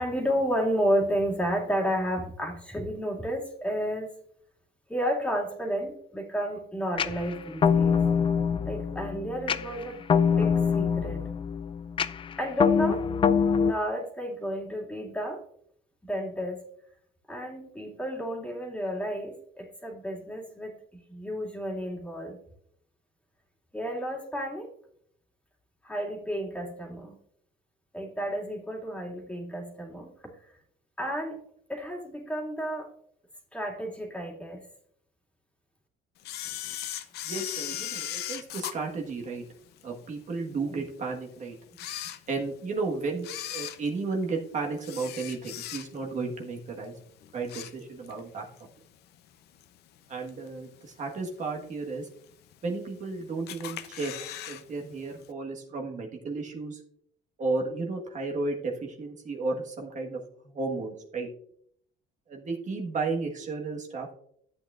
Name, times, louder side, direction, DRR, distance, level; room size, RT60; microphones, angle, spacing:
voice 1, 0.0-4.1 4.9-8.0 8.6-10.0 10.4-11.2 12.4-13.0 13.6-15.4 16.0-16.6 17.3-20.8 21.1-22.4 23.7-24.7 25.8-27.1 27.9-30.1 31.0-31.4 31.7-32.9 33.5-34.6, equal, 5° left, -1 dB, 2.2 m, -31 dB
sound 1, 7.0-13.7, left 6 dB, 30° left, 0.4 m, -25 dB
Camera, 36.2-39.8 40.3-40.4 41.1-41.2 41.7-42.7 43.2-46.2 46.5-46.8 47.2-48.2 48.6-48.7 49.6-49.7 50.3-50.7 51.1-51.2 51.4-51.5 51.7-51.8 52.5-53.0 53.5-54.6 54.9-55.0 55.2-55.3, left 12 dB, 75° left, 0.7 m, -37 dB
voice 2, 37.3-39.4 39.8-41.5 42.3-46.9 47.3-48.4 50.1-52.1 52.6-54.1 54.5-56.8 57.4-61.3 62.3-64.1, right 3 dB, 45° right, 0 dB, 1.5 m, -33 dB
12.0 x 8.3 x 2.5 m, 0.68 s
cardioid pair, 110°, 17 cm